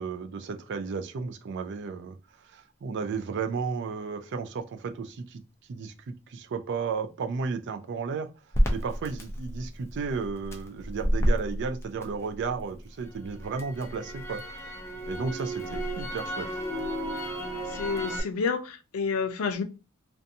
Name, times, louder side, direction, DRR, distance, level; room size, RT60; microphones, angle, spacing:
voice 1, 0.0-2.2 2.4-5.4 5.7-8.3 8.7-14.8 15.1-16.6, right 5 dB, 55° right, 0.4 m, -33 dB
Crackle, 8.5-12.7 13.1-18.2, equal, 15° left, 0.5 m, -30 dB
voice 2, 17.7-19.6, left 5 dB, 85° left, 0.5 m, -29 dB
2.6 x 2.2 x 2.6 m
head